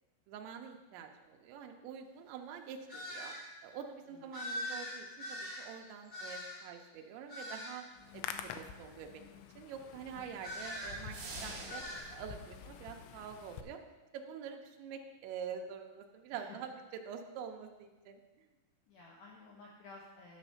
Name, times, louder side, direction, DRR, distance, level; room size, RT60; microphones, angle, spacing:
voice 1, 0.3-3.3 3.6-7.8 8.1-11.2 11.4-11.8 12.1-13.8 14.1-18.5, right 7 dB, 85° right, 3 dB, 2.6 m, -46 dB
sound 1, 2.9-3.4 4.3-6.7 7.3-7.8 10.4-11.0 11.7-12.0, left 1 dB, 5° left, 1.9 m, -42 dB
voice 2, 4.1-4.5 16.3-16.6 18.9-20.4, left 3 dB, 70° left, -3 dB, 2.8 m, -54 dB
Hands, 7.9-13.6, left 9 dB, 90° left, 2.7 m, -48 dB
sound 2, 11.1-12.1, right 3 dB, 45° right, 3.0 m, -45 dB
10.5 x 6.2 x 5.6 m, 1.2 s
omnidirectional pair, 6.0 m